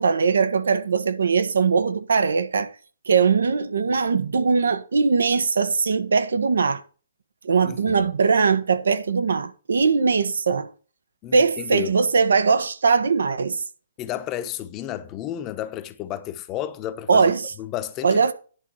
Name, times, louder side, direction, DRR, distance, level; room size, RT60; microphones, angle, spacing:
voice 1, 0.0-2.7 3.1-6.8 7.4-10.7 11.3-13.6 17.1-17.5 18.0-18.3, right 5 dB, 75° right, 1.4 m, -20 dB
voice 2, 7.6-8.1 11.2-12.0 14.0-17.3 17.6-18.3, left 12 dB, 25° left, 1.0 m, -32 dB
11.0 x 4.1 x 7.3 m
hypercardioid pair, 140°, 0 cm